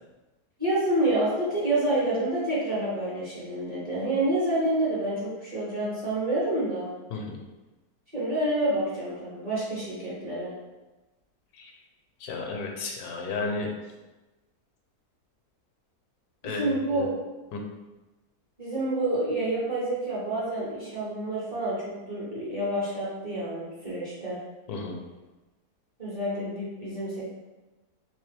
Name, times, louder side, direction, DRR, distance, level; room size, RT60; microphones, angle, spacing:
voice 1, 0.6-6.9 8.1-10.5 16.4-17.1 18.6-24.4 26.0-27.2, right 1 dB, 30° right, -8 dB, 0.9 m, -28 dB
voice 2, 12.2-13.7 16.4-16.6 16.9-17.1 17.5-17.6 24.7-25.0, left 3 dB, 80° left, 1 dB, 1.1 m, -33 dB
3.2 x 3.2 x 3.3 m, 1.1 s
omnidirectional pair, 1.7 m